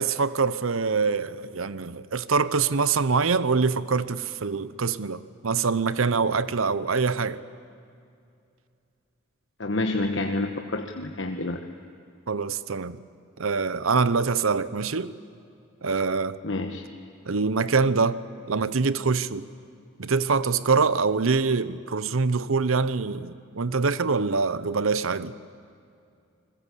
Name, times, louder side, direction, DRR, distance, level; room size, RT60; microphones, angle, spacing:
voice 1, 0.0-7.4 12.3-13.0 13.4-15.1 15.8-16.4 17.3-18.2 18.5-19.5 20.0-25.3, right 4 dB, 80° right, 15 dB, 0.8 m, -24 dB
voice 2, 9.6-11.6 16.4-16.8, left 2 dB, 60° left, 4 dB, 1.2 m, -28 dB
29.5 x 21.0 x 8.4 m, 2.5 s
head